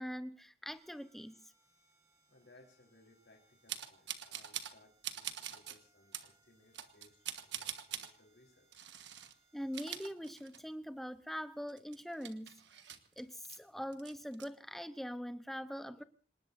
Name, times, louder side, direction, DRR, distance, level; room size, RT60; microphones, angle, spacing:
voice 1, 0.0-1.4 9.5-12.5 13.2-16.0, equal, ahead, 11 dB, 0.8 m, -42 dB
sound 1, 0.7-9.8, right 3 dB, 20° right, 4.5 m, -73 dB
voice 2, 2.3-8.9, left 2 dB, 80° left, 0 dB, 3.9 m, -65 dB
sound 2, 3.7-4.8 5.0-5.8 6.1-6.3 6.7-8.1 8.7-9.3 9.6-10.8 11.2-11.3 11.7-13.6 13.9-14.5, right 10 dB, 75° right, 1.4 m, -44 dB
26.5 x 19.5 x 2.6 m, 0.38 s
head